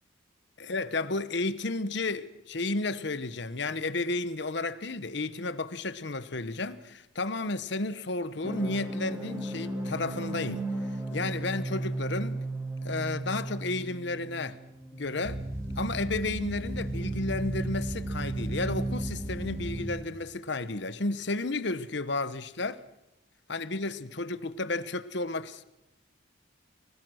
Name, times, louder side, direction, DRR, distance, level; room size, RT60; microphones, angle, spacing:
voice 1, 0.6-10.6 11.1-12.4 12.8-14.6 14.9-15.4 15.8-22.8 23.5-25.6, left 3 dB, 55° left, 1.0 m, -32 dB
sound 1, 8.4-19.8, right 2 dB, 15° right, 3.4 m, -34 dB
24.5 x 19.0 x 6.3 m
head